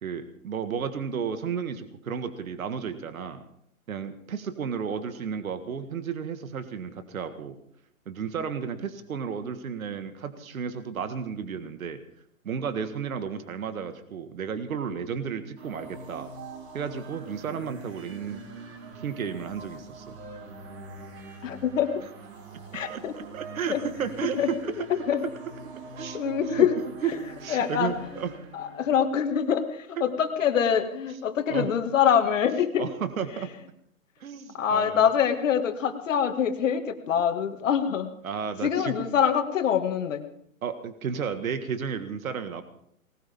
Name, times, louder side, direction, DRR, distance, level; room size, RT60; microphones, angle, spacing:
voice 1, 0.0-3.4 3.9-7.6 8.1-12.0 12.4-16.3 16.7-18.4 19.0-20.2 22.9-24.9 26.0-26.7 27.0-27.1 27.4-28.3 30.0-30.1 31.5-31.7 32.8-33.5 34.2-35.1 38.2-39.0 40.6-42.6, right 7 dB, 75° right, 9 dB, 1.8 m, -33 dB
sound 1, 15.6-29.1, right 3 dB, 50° right, 4.6 m, -44 dB
voice 2, 21.4-22.0 22.7-23.1 23.7-23.8 24.4-24.5 24.9-25.2 26.1-26.7 27.5-27.9 28.5-32.9 34.5-38.1 38.6-40.2, left 8 dB, 60° left, 7 dB, 2.2 m, -24 dB
20.0 x 18.0 x 3.7 m, 0.70 s
hypercardioid pair, 135°, 42 cm